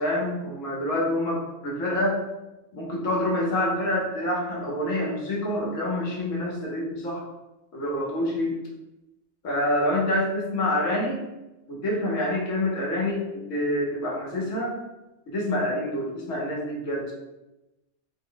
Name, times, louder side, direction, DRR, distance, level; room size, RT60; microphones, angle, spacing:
voice 1, 0.0-2.2 2.7-7.2 7.7-8.6 9.4-11.2 11.7-13.2 13.5-14.8 15.3-17.1, left 1 dB, 75° left, -3 dB, 1.3 m, -27 dB
3.7 x 2.1 x 3.8 m, 0.99 s
omnidirectional pair, 1.4 m